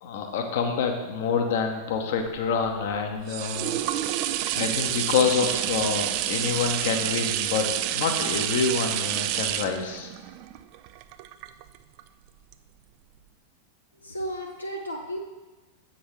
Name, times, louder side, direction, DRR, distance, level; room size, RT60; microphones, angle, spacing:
voice 1, 0.0-3.8 4.5-10.1, left 6 dB, 55° left, 5 dB, 0.8 m, -27 dB
sound 1, 2.3-12.0 12.5-12.6, right 12 dB, 45° right, 0.3 m, -29 dB
voice 2, 14.0-15.2, equal, 85° left, 1 dB, 0.5 m, -33 dB
7.8 x 6.0 x 3.3 m, 1.2 s
figure-of-eight pair, 90°, 0 cm